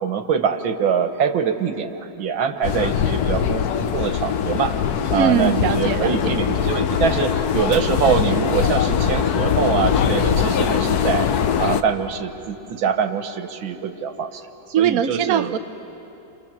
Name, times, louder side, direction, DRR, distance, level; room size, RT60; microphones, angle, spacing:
voice 1, 0.0-4.8 5.1-11.3 11.6-14.4 14.8-15.5, right 7 dB, 90° right, 8 dB, 2.0 m, -24 dB
sound 1, 2.6-11.8, left 8 dB, 60° left, 1.2 m, -21 dB
voice 2, 5.1-6.3 14.7-15.6, right 8 dB, 60° right, 9 dB, 1.0 m, -21 dB
29.5 x 26.5 x 7.3 m, 2.9 s
omnidirectional pair, 2.1 m